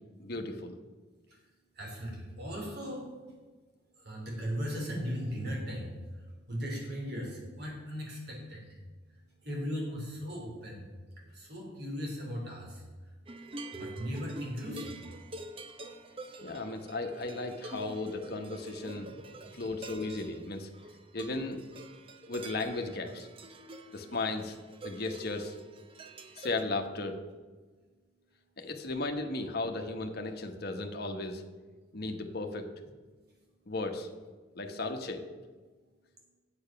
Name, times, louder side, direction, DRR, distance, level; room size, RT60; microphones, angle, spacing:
voice 1, 0.2-0.8 16.4-19.1 19.5-20.7 21.1-21.6 22.3-23.3 23.9-24.6 24.8-25.5 26.3-27.2 28.6-31.4 31.9-32.7 33.7-34.1 34.5-35.2, left 2 dB, 50° left, 5 dB, 1.0 m, -35 dB
voice 2, 1.8-3.1 4.0-5.9 6.5-8.8 9.4-10.8 11.3-12.8 13.7-15.0, equal, 55° right, -2 dB, 3.1 m, -37 dB
sound 1, 13.3-26.6, right 2 dB, 30° right, 0.6 m, -47 dB
8.9 x 7.9 x 5.8 m, 1.4 s
head